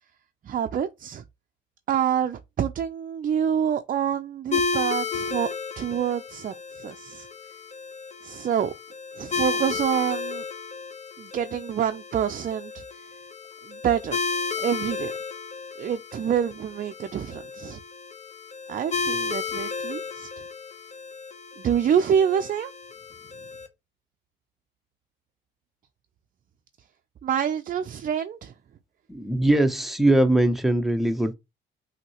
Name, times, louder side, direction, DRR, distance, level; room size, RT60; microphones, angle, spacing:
voice 1, 0.4-1.2 1.9-5.5 5.8-7.3 8.2-8.7 9.2-10.4 11.2-12.8 13.6-14.2 14.6-15.1 15.8-17.8 18.7-20.3 21.6-22.7 27.2-28.5, right 8 dB, 45° right, 0.5 m, -27 dB
sound 1, 4.5-23.7, left 4 dB, 35° left, 0.8 m, -33 dB
voice 2, 29.1-31.3, right 1 dB, ahead, 0.7 m, -21 dB
5.9 x 2.8 x 2.9 m
cardioid pair, 90°, 20 cm